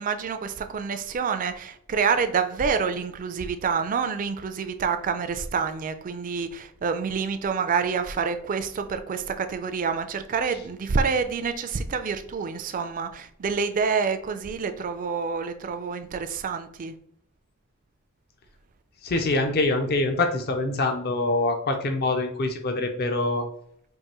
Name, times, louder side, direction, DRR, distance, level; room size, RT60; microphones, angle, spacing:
voice 1, 0.0-17.0, right 5 dB, 40° right, 0.3 m, -27 dB
voice 2, 19.0-23.5, left 2 dB, 45° left, 0.5 m, -25 dB
4.7 x 2.5 x 2.9 m
head